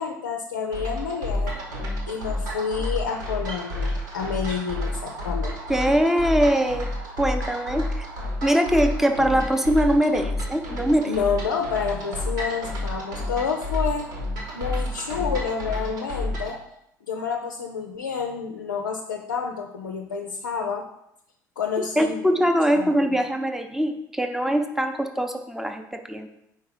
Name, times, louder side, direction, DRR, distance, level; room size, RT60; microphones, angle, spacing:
voice 1, 0.0-1.5 2.1-5.6 11.1-14.1 14.5-16.6 17.1-20.8 21.6-23.2, left 6 dB, 75° left, 2 dB, 0.5 m, -29 dB
sound 1, 0.7-16.6, left 1 dB, 65° right, 1.4 m, -30 dB
voice 2, 5.7-6.9 7.2-8.1 8.4-11.2 22.0-26.3, equal, 5° right, 6 dB, 0.7 m, -22 dB
4.6 x 4.5 x 4.7 m, 0.80 s
figure-of-eight pair, 60°, 10 cm